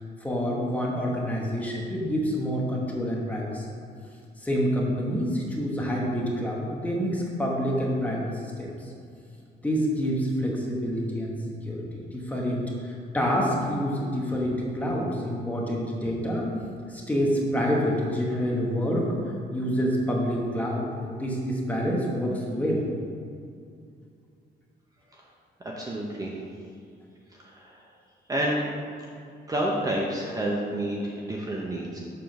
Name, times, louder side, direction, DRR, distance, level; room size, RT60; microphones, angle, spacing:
voice 1, 0.2-3.7 4.4-8.3 8.6-8.7 9.6-11.3 11.6-16.4 16.9-19.1 19.5-22.8, equal, 10° left, -3 dB, 1.0 m, -27 dB
voice 2, 25.6-26.3 27.3-27.9 28.3-28.7 29.5-32.0, right 1 dB, 20° right, -3 dB, 0.7 m, -29 dB
6.9 x 3.8 x 6.3 m, 2.3 s
cardioid pair, 165°, 18 cm